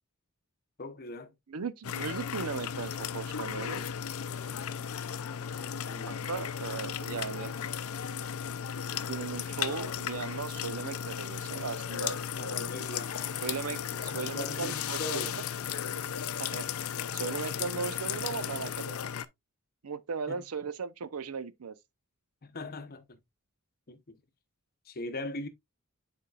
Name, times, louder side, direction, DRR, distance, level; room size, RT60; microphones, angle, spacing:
voice 1, 0.8-1.3 5.8-6.3 12.3-13.1 14.0-15.4 20.3-20.4 22.5-23.2 23.9-24.2 24.9-25.5, left 2 dB, 45° left, 0.9 m, -40 dB
voice 2, 1.5-3.9 6.1-7.6 9.1-12.7 13.4-15.4 16.4-16.7 17.1-19.0 19.8-21.7, right 5 dB, 85° right, 0.6 m, -37 dB
sound 1, 1.8-19.2, left 8 dB, 70° left, 0.5 m, -35 dB
9.7 x 4.4 x 2.3 m
head